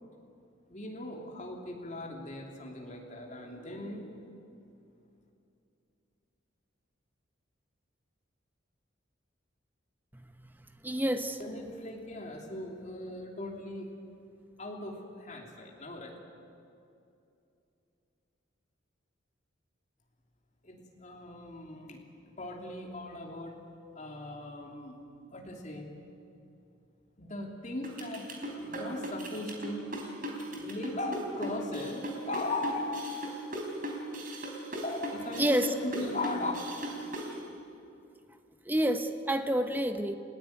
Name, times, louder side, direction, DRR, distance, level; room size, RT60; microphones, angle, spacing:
voice 1, 0.7-4.3 11.4-13.9 14.6-16.1 20.6-22.0 22.4-23.5 23.9-25.0 25.3-25.9 27.2-28.2 28.6-29.9 30.5-32.8 34.8-36.5, left 2 dB, 35° left, 0 dB, 3.0 m, -38 dB
voice 2, 10.1-11.4 35.4-35.7 38.7-40.2, right 1 dB, 10° right, 8 dB, 1.0 m, -29 dB
sound 1, 27.8-37.3, right 1 dB, 45° right, 3.9 m, -38 dB
29.5 x 16.0 x 9.3 m, 2.7 s
head